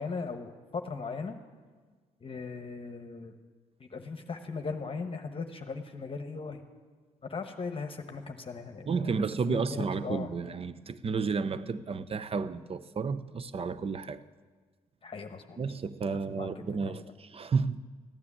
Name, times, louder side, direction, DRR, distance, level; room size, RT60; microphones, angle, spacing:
voice 1, 0.0-1.4 2.2-3.3 3.8-6.6 7.2-9.1 9.5-10.3 15.0-15.6 16.3-16.9, left 4 dB, 40° left, 1.1 m, -38 dB
voice 2, 8.9-14.2 15.6-17.8, right 5 dB, 40° right, 0.7 m, -32 dB
14.0 x 9.7 x 8.5 m
supercardioid pair, 65°, 15 cm